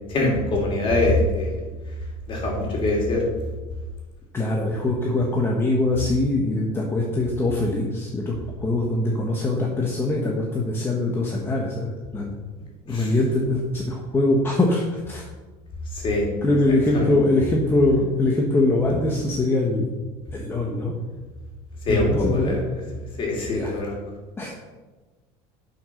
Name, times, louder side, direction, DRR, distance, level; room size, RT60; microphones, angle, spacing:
voice 1, 0.1-1.5 2.3-3.2 12.9-13.1 15.9-16.3 16.9-17.1 21.8-22.6 23.2-24.0, left 2 dB, 35° left, -2 dB, 3.4 m, -23 dB
voice 2, 4.3-8.3 8.6-12.4 12.9-15.3 16.4-20.0 20.3-20.9 21.9-22.6 23.5-23.7 24.4-24.5, left 2 dB, 15° left, -1 dB, 1.3 m, -23 dB
11.0 x 5.9 x 6.4 m, 1.3 s
cardioid pair, 155°, 15 cm